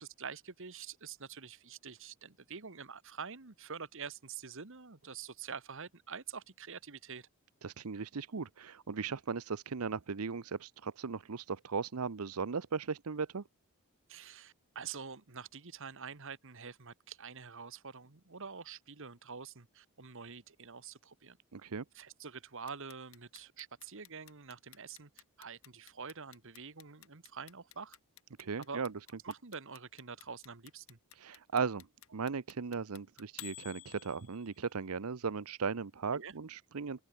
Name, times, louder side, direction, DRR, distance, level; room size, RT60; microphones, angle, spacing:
voice 1, 0.0-7.3 14.1-21.4 21.9-25.1 25.4-28.0 28.6-28.8 29.2-31.0 36.1-36.3, right 6 dB, 60° right, 1.6 m, -46 dB
voice 2, 7.6-13.4 21.5-21.8 28.4-28.9 31.1-31.9 32.1-37.0, right 5 dB, 80° right, 0.7 m, -37 dB
Clock, 22.7-34.7, left 15 dB, 65° left, 1.8 m, -52 dB
open air
head